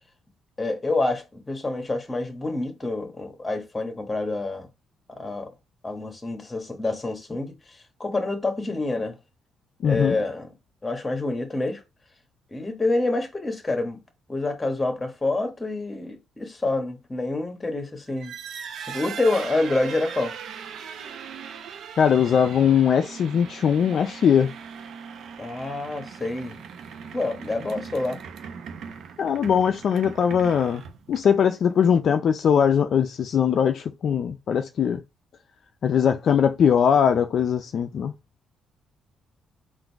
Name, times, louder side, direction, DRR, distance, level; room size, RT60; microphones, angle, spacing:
voice 1, 0.6-4.7 5.1-5.5 5.8-9.2 9.8-10.5 10.8-11.8 12.5-14.0 14.3-18.3 18.8-20.3 25.4-26.6 27.1-28.2, left 2 dB, 20° left, 1.3 m, -27 dB
voice 2, 9.8-10.2 22.0-24.5 29.2-30.8 31.1-35.0 35.8-38.1, left 7 dB, 60° left, 0.4 m, -21 dB
sound 1, 18.1-31.5, right 7 dB, 70° right, 0.7 m, -39 dB
3.8 x 2.6 x 4.5 m
cardioid pair, 90°, 0 cm